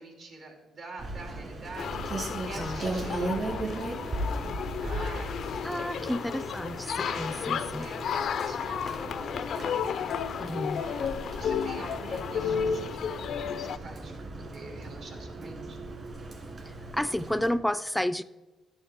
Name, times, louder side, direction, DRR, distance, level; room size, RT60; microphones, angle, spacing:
voice 1, 0.0-6.2 7.0-7.5 7.8-9.8 10.7-13.0 13.4-15.8, right 3 dB, 65° right, 1 dB, 2.6 m, -46 dB
Rain, 1.0-17.5, right 2 dB, 40° right, 2.6 m, -37 dB
sound 1, 1.8-13.8, left 7 dB, 65° left, 0.4 m, -33 dB
voice 2, 5.6-7.9 10.4-10.9 16.7-18.2, left 1 dB, 5° left, 14 dB, 0.4 m, -31 dB
11.5 x 7.1 x 3.6 m, 1.2 s
cardioid pair, 90°, 0 cm